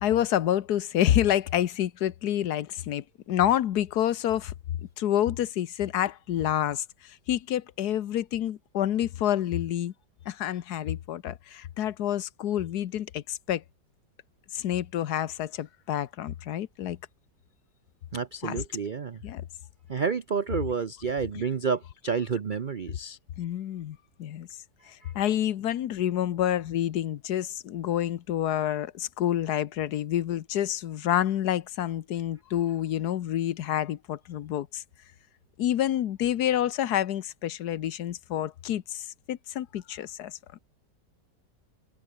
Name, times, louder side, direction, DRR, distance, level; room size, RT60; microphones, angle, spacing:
voice 1, 0.0-4.5 5.0-9.9 10.3-13.6 14.5-17.0 18.4-18.6 19.2-19.4 23.4-24.5 24.9-34.8 35.6-40.6, left 11 dB, 65° left, 1.4 m, -28 dB
voice 2, 18.1-19.2 19.9-23.2 25.0-25.1, right 6 dB, 45° right, 0.6 m, -30 dB
omnidirectional pair, 1.9 m